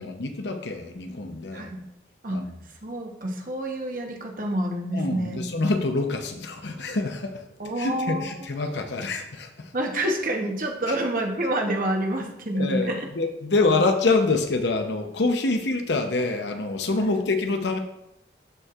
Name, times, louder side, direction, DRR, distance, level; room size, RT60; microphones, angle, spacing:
voice 1, 0.0-1.7 2.3-2.5 4.9-7.4 7.8-9.7 12.5-17.8, left 3 dB, 80° left, 5 dB, 0.8 m, -26 dB
voice 2, 1.5-1.8 2.2-2.4 2.8-5.4 7.6-8.3 9.7-13.1 13.7-13.8 17.0-17.1, right 1 dB, 50° right, 2 dB, 1.0 m, -28 dB
13.0 x 4.5 x 2.5 m, 0.85 s
head